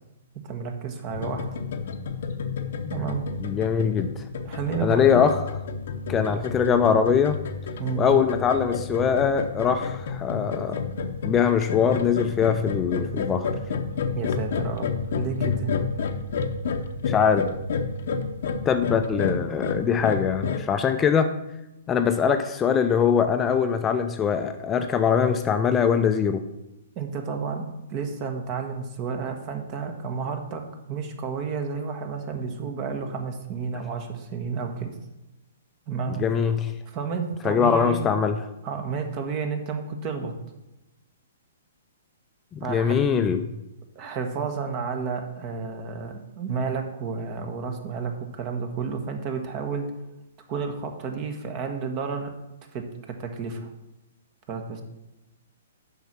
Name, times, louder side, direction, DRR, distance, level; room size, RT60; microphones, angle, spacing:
voice 1, 0.4-1.4 2.9-3.2 4.4-5.2 6.3-6.4 7.8-8.1 14.1-15.7 26.9-34.9 35.9-36.2 36.9-38.0 38.6-40.3 42.6-43.0 43.9-49.9 50.5-52.3 52.7-53.7 54.5-54.8, right 5 dB, 35° right, 5 dB, 1.3 m, -31 dB
sound 1, 1.1-20.6, left 5 dB, 65° left, 0.7 m, -30 dB
voice 2, 3.4-4.2 4.8-5.4 6.1-7.4 8.0-10.8 11.2-13.5 17.1-17.4 18.7-21.3 21.9-26.4 36.1-36.7 37.4-38.4 42.5-43.5, left 7 dB, 20° left, 8 dB, 0.5 m, -22 dB
6.9 x 5.5 x 5.9 m, 0.94 s
hypercardioid pair, 125°, 0 cm